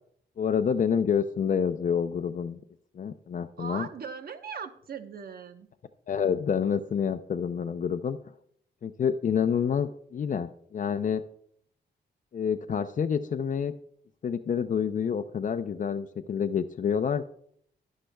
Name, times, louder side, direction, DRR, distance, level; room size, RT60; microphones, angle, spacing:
voice 1, 0.4-2.6 2.9-3.9 6.1-8.2 8.8-11.2 12.3-13.7 14.2-17.3, left 7 dB, 45° left, 7 dB, 0.5 m, -28 dB
voice 2, 3.6-5.7, right 6 dB, 60° right, 8 dB, 1.0 m, -39 dB
11.5 x 11.0 x 2.3 m, 0.65 s
wide cardioid pair, 120°, 18 cm